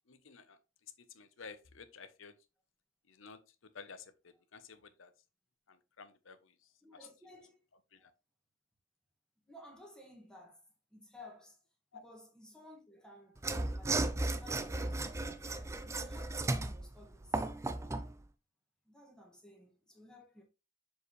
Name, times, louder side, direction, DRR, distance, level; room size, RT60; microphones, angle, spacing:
voice 1, 0.1-0.6 1.0-2.3 3.1-5.1 5.7-7.1 7.9-8.1 11.9-12.0, left 5 dB, 80° left, 0.9 m, -53 dB
voice 2, 6.8-7.6 9.5-10.6 10.9-11.6 12.0-17.4 18.9-20.4, left 1 dB, 5° left, 1.9 m, -56 dB
Mechanisms / Sawing, 13.4-18.1, right 2 dB, 15° right, 0.4 m, -35 dB
6.8 x 4.8 x 3.2 m
head